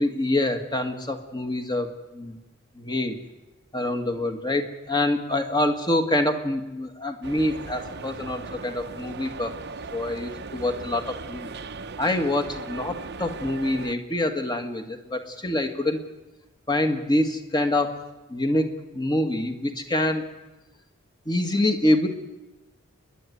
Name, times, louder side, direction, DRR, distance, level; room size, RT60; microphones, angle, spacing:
voice 1, 0.0-2.4 2.8-3.2 3.7-9.5 9.9-11.5 12.0-16.0 16.7-20.3 21.3-22.1, left 1 dB, 20° left, 6 dB, 1.8 m, -26 dB
sound 1, 7.2-14.0, right 4 dB, 50° right, 0.9 m, -38 dB
30.0 x 11.0 x 9.4 m, 1.0 s
head